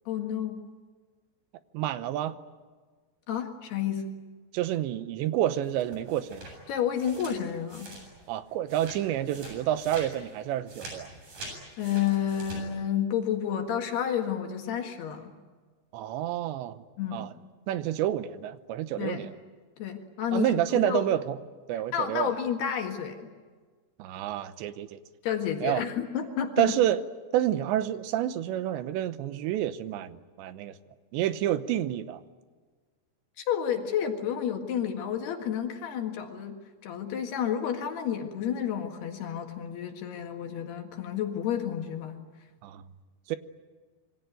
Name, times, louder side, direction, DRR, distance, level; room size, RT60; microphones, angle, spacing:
voice 1, 0.1-0.6 3.3-4.0 6.7-7.9 11.8-15.3 17.0-17.3 19.0-19.3 19.8-21.1 21.9-23.3 25.2-26.7 33.4-36.6 36.8-42.2, left 9 dB, 70° left, 4 dB, 3.7 m, -30 dB
voice 2, 1.7-2.4 4.5-6.5 8.3-11.1 15.9-16.8 17.1-17.3 17.7-19.3 20.3-21.4 21.7-22.4 24.0-25.0 25.6-25.8 26.6-27.0 27.3-30.8 31.1-32.2 42.6-42.8 43.3-43.4, right 12 dB, 90° right, 12 dB, 3.3 m, -29 dB
sound 1, 5.6-8.4 8.7-12.6, right 2 dB, 45° right, 9.2 m, -45 dB
26.5 x 23.5 x 9.3 m, 1.5 s
omnidirectional pair, 5.0 m